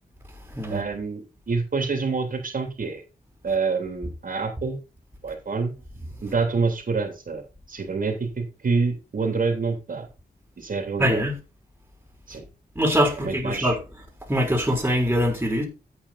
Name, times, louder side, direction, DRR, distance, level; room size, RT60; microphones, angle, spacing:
voice 1, 0.7-3.0 3.4-4.8 5.2-5.7 6.2-7.4 7.7-10.1 10.6-11.2 12.3-12.4 13.2-13.7, right 4 dB, 55° right, 3.1 m, -27 dB
voice 2, 11.0-11.4 12.8-13.8 14.3-15.7, equal, 10° right, 4.0 m, -23 dB
10.0 x 8.5 x 4.2 m
wide cardioid pair, 90°, 17 cm